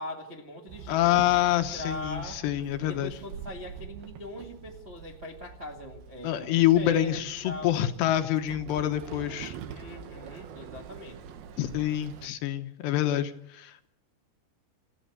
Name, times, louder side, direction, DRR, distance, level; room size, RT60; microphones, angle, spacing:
voice 1, 0.0-2.4 2.8-7.9 9.7-11.4, left 1 dB, 45° right, 0 dB, 0.8 m, -41 dB
Walk footsteps / Chatter / Hiss, 0.7-12.3, right 7 dB, 70° right, 2.7 m, -45 dB
voice 2, 0.9-3.1 6.2-9.6 11.6-13.9, left 12 dB, 75° left, 8 dB, 3.0 m, -26 dB
28.5 x 15.0 x 6.6 m, 0.72 s
omnidirectional pair, 5.3 m